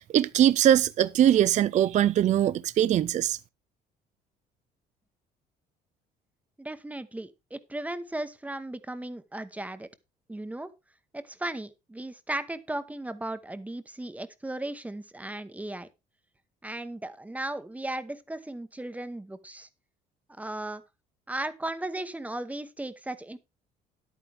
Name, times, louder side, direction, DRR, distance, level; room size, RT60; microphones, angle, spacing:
voice 1, 0.0-3.4, right 11 dB, 45° right, 0.4 m, -22 dB
voice 2, 6.6-9.9 10.3-10.7 11.1-15.9 16.6-19.7 20.4-20.8 21.3-23.4, right 1 dB, 10° right, 1.0 m, -36 dB
10.5 x 8.9 x 3.4 m
cardioid pair, 110°, 17 cm